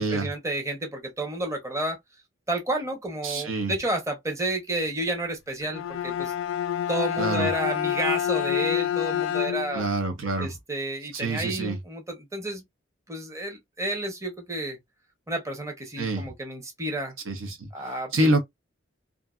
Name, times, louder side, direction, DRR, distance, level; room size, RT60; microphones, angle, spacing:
voice 1, 0.0-2.0 2.5-6.3 6.9-9.8 10.4-12.6 13.1-14.8 15.3-17.1 17.7-18.4, right 2 dB, 15° right, 0.7 m, -31 dB
voice 2, 3.2-3.7 7.2-7.5 9.7-10.5 11.1-11.8 16.0-16.3 17.3-17.7 18.1-18.4, right 2 dB, 80° right, 0.8 m, -26 dB
Bowed string instrument, 5.6-9.9, left 11 dB, 75° left, 0.3 m, -27 dB
2.6 x 2.5 x 2.3 m
head